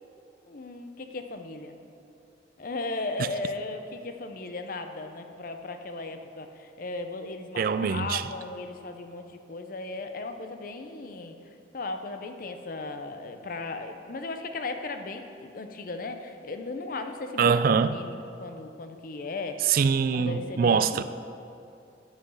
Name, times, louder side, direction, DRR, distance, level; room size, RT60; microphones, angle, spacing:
voice 1, 0.5-1.8 2.6-11.4 11.7-19.8 20.1-21.0, left 3 dB, 50° left, 0.6 m, -36 dB
voice 2, 7.6-8.3 17.4-18.0 19.7-21.0, right 6 dB, 55° right, 0.3 m, -23 dB
9.7 x 5.7 x 5.6 m
head